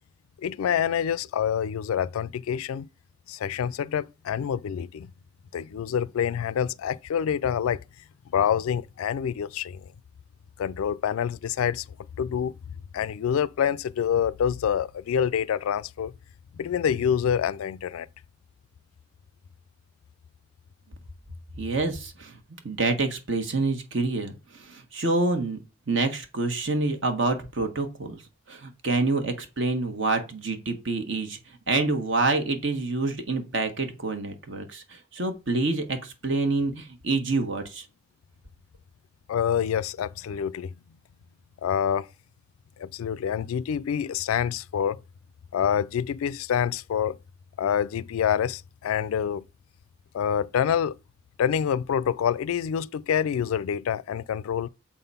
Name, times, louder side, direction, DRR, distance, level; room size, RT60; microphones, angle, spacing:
voice 1, 0.4-2.9 3.3-5.1 5.5-7.8 8.3-9.8 10.6-11.8 12.2-12.5 12.9-16.1 16.6-18.1 39.3-40.8 41.6-42.1 42.8-45.0 45.5-47.2 47.6-49.4 50.1-50.9 51.4-54.7, left 8 dB, 90° left, 0.3 m, -26 dB
voice 2, 21.6-22.4 22.6-25.6 25.9-28.2 28.5-31.4 31.7-37.8, right 3 dB, 60° right, 1.4 m, -27 dB
7.3 x 3.9 x 5.5 m
head